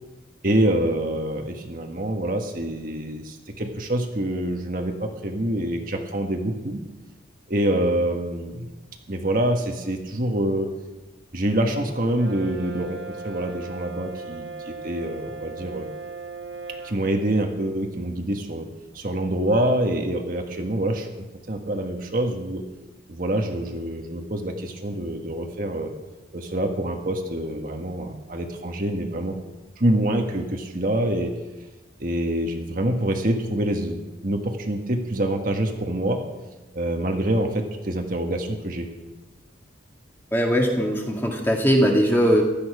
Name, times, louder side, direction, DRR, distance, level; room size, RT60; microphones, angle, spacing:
voice 1, 0.4-6.8 7.5-8.7 9.1-10.7 11.3-15.9 16.8-18.7 18.9-21.1 21.5-22.6 23.1-25.9 26.3-29.4 29.8-31.3 32.0-36.2 36.7-38.9, right 1 dB, 45° right, 3 dB, 1.5 m, -26 dB
Brass instrument, 12.1-17.0, right 4 dB, 65° right, 1.2 m, -38 dB
voice 2, 40.3-42.4, equal, 10° left, 0 dB, 2.0 m, -20 dB
16.0 x 12.5 x 4.9 m, 1.1 s
head